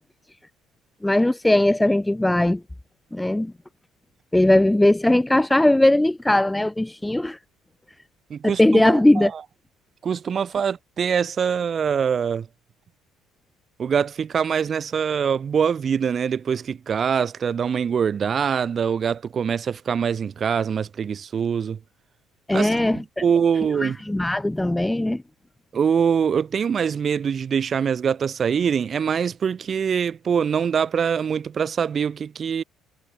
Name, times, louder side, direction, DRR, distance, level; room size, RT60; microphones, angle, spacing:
voice 1, 1.0-2.6 3.1-3.5 4.3-7.4 8.4-9.3 22.5-23.0 23.8-25.2, left 1 dB, 5° left, 0.5 m, -19 dB
voice 2, 8.3-9.3 10.0-12.5 13.8-21.8 22.5-22.7 23.2-24.0 25.7-32.6, right 7 dB, 40° right, 4.3 m, -23 dB
cardioid pair, 105°, 0 cm